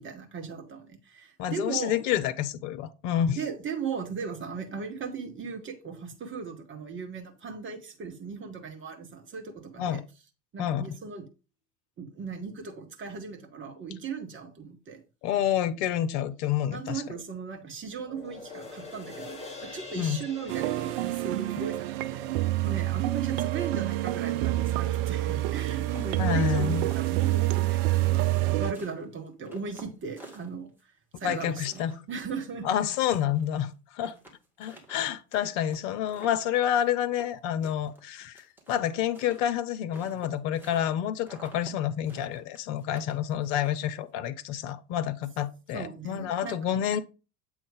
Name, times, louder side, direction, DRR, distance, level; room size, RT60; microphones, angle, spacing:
voice 1, 0.0-1.9 3.3-10.0 10.5-11.3 12.0-15.0 16.7-30.7 31.2-32.7 45.7-46.6, right 5 dB, 25° right, 1.4 m, -37 dB
voice 2, 1.4-3.4 9.8-10.0 10.6-10.9 15.2-17.0 20.0-20.2 26.2-26.9 31.2-32.0 32.6-34.1 34.6-47.0, left 10 dB, 50° left, 0.7 m, -28 dB
sound 1, 18.0-24.6 25.0-25.1, left 3 dB, 15° left, 2.3 m, -46 dB
sound 2, 20.5-28.7, right 17 dB, 45° right, 0.4 m, -27 dB
sound 3, 25.9-28.0 28.3-30.8 31.2-33.5 33.7-33.8 34.0-37.4 37.6-40.9 41.2-41.7 42.0-44.1, right 1 dB, 5° right, 2.0 m, -51 dB
7.8 x 3.2 x 5.0 m
figure-of-eight pair, 70°, 46 cm